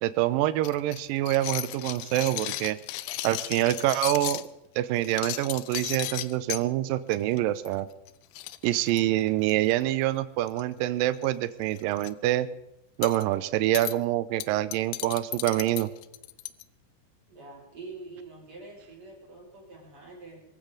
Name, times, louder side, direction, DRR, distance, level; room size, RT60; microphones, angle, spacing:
voice 1, 0.0-2.8 3.2-4.5 4.8-7.9 8.6-12.5 13.0-15.9, right 14 dB, 80° right, 14 dB, 2.3 m, -26 dB
sound 1, 0.6-4.5 5.0-6.6 7.1-7.4 7.7-7.8 8.1-8.2 8.4-9.7 10.5-10.9 11.1-11.3 11.7-12.1 13.0-13.2 13.8-14.0 14.4-16.6, left 16 dB, 85° left, 2.7 m, -35 dB
voice 2, 17.3-20.4, right 3 dB, 35° right, -3 dB, 6.8 m, -45 dB
24.5 x 15.0 x 3.9 m, 0.93 s
omnidirectional pair, 4.4 m